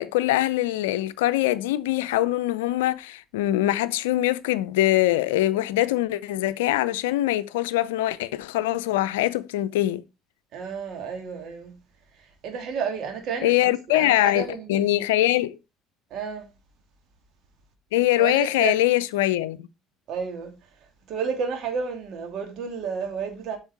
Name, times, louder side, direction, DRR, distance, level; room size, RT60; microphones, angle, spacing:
voice 1, 0.0-10.0 13.4-15.5 17.9-19.7, left 15 dB, 75° left, 0.6 m, -23 dB
voice 2, 10.5-11.7 12.4-14.9 16.1-16.5 18.2-18.8 20.1-20.5 21.1-23.6, right 6 dB, 55° right, 2.8 m, -31 dB
8.0 x 6.0 x 4.5 m
hypercardioid pair, 60°, 0 cm